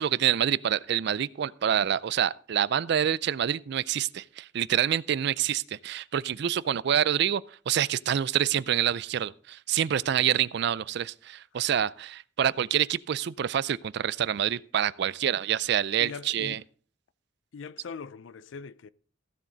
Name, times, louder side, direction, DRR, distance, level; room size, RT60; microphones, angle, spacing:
voice 1, 0.0-16.6, right 9 dB, 60° right, 0.4 m, -27 dB
voice 2, 16.0-16.6 17.5-18.9, left 5 dB, 80° left, 0.4 m, -41 dB
15.0 x 7.2 x 3.9 m
head